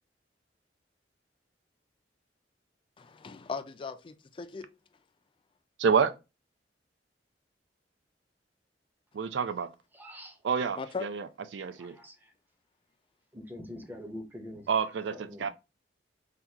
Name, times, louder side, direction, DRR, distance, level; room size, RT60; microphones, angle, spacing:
voice 1, 3.0-4.7 10.8-11.1, left 4 dB, 30° left, 0.3 m, -38 dB
voice 2, 5.8-6.1 9.1-9.7 10.4-11.3 11.5-12.0 14.7-15.5, right 6 dB, 80° right, 0.4 m, -28 dB
voice 3, 9.9-10.4 11.7-12.3 13.3-14.7 15.1-15.5, left 1 dB, 10° right, 0.6 m, -44 dB
3.5 x 2.3 x 2.7 m
head